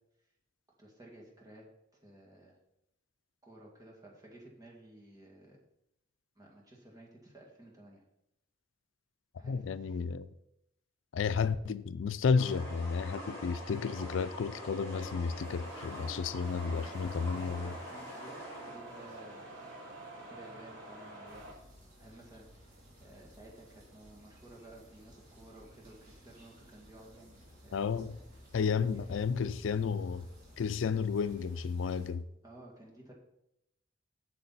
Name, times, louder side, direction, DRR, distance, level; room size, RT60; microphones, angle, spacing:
voice 1, 0.8-1.6 2.0-2.6 3.4-5.6 6.4-8.0 9.4-10.0 16.6-19.8 20.1-21.5 22.0-22.7 23.0-27.9 28.6-29.2 32.4-33.1, right 1 dB, 20° right, 2.0 m, -54 dB
voice 2, 9.4-10.3 11.1-17.7 27.7-28.2 28.5-30.3 30.6-32.2, left 5 dB, 85° left, 0.4 m, -32 dB
sound 1, 12.4-18.8, equal, 15° left, 3.4 m, -45 dB
sound 2, 15.4-21.5, right 1 dB, 85° right, 3.1 m, -48 dB
sound 3, 21.3-32.1, equal, 45° right, 3.0 m, -56 dB
8.5 x 6.6 x 4.1 m
head